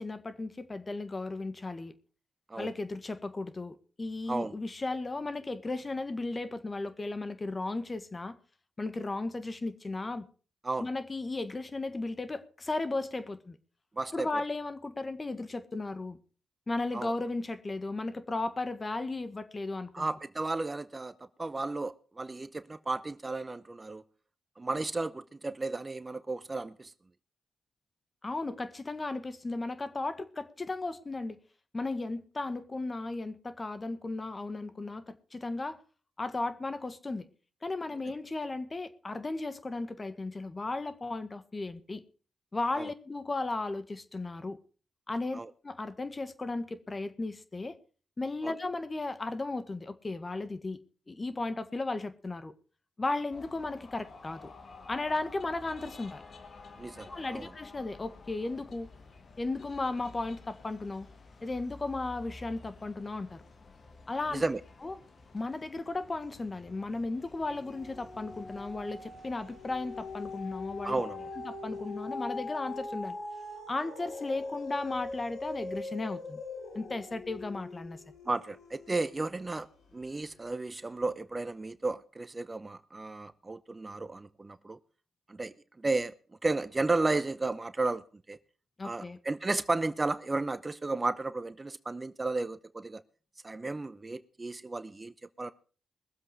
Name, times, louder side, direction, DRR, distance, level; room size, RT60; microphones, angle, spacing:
voice 1, 0.0-1.9 2.6-8.4 8.8-10.3 10.8-13.6 14.1-16.2 16.7-20.1 28.2-31.4 31.7-35.8 36.2-37.3 37.6-42.0 42.5-44.6 45.1-47.8 48.2-50.8 51.1-52.5 53.0-54.5 54.9-56.2 57.0-58.9 59.4-61.1 61.4-63.4 64.1-64.4 64.8-64.9 65.3-71.0 71.4-73.2 73.7-76.4 76.7-78.0 88.8-89.2, left 2 dB, 35° left, 1.5 m, -35 dB
voice 2, 14.0-14.3 16.9-17.1 19.9-24.0 24.6-26.9 42.8-42.9 45.3-45.5 48.4-48.5 56.8-57.5 64.3-64.6 70.8-71.3 78.3-79.7 79.9-84.8 85.3-86.1 86.4-88.4 88.8-93.0 93.4-95.5, right 3 dB, 30° right, 0.8 m, -33 dB
sound 1, 53.3-72.0, left 3 dB, 55° left, 1.9 m, -52 dB
sound 2, 66.4-66.9 67.3-79.7 80.3-80.4, left 3 dB, 80° left, 3.2 m, -42 dB
21.5 x 7.7 x 4.8 m
supercardioid pair, 50°, 0 cm